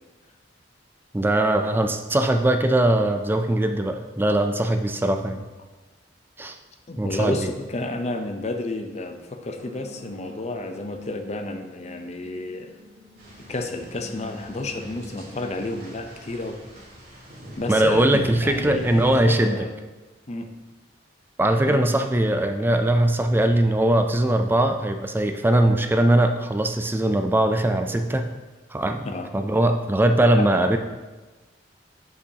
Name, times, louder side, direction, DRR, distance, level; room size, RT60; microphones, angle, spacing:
voice 1, 1.1-5.4 6.4-6.6 7.0-7.5 17.7-19.7 21.4-28.3 28.7-30.8, right 1 dB, 10° right, 6 dB, 0.3 m, -21 dB
voice 2, 6.9-12.7 13.5-16.6 17.6-18.0 18.4-19.7 20.3-20.5 21.6-21.8 29.0-29.3 30.4-30.5, left 2 dB, 35° left, 6 dB, 0.6 m, -31 dB
sound 1, 9.6-15.5, left 1 dB, 35° right, 1.3 m, -47 dB
sound 2, 13.2-19.2, equal, 55° right, 2.1 m, -42 dB
7.6 x 6.9 x 2.8 m, 1.2 s
head